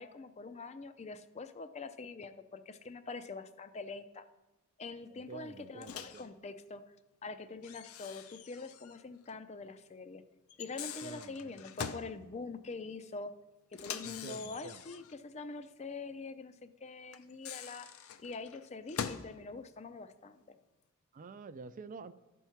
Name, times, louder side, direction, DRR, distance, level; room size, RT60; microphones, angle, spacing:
voice 1, 0.0-4.2 4.8-6.8 7.2-10.2 10.6-13.3 13.7-17.9 18.2-20.6, left 3 dB, 30° left, 11 dB, 0.4 m, -44 dB
voice 2, 5.3-6.3 11.0-11.6 14.0-14.8 21.1-22.1, right 4 dB, 40° right, 14 dB, 0.4 m, -48 dB
Microwave oven, 5.8-6.3 7.6-9.0 9.3-9.4 10.5-12.1 13.7-15.2 17.1-19.3, left 7 dB, 80° left, 0.5 m, -43 dB
12.0 x 4.6 x 5.7 m, 1.1 s
head